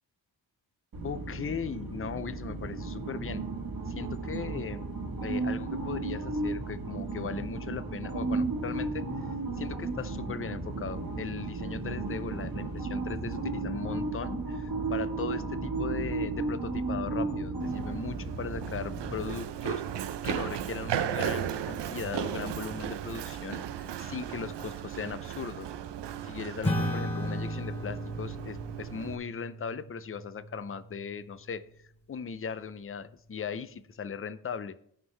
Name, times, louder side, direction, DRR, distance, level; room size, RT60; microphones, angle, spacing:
sound 1, 0.9-19.3, right 3 dB, 50° right, 1.4 m, -34 dB
voice 1, 1.0-3.4 3.9-4.9 5.2-9.0 9.6-25.7 26.2-31.6 32.1-34.8, left 6 dB, 30° left, 13 dB, 0.5 m, -38 dB
Run, 17.6-29.2, right 9 dB, 70° right, 0.6 m, -36 dB
Acoustic guitar / Strum, 26.6-31.4, left 1 dB, 15° left, 2.2 m, -35 dB
16.5 x 5.5 x 3.2 m, 0.67 s
wide cardioid pair, 125°, 43 cm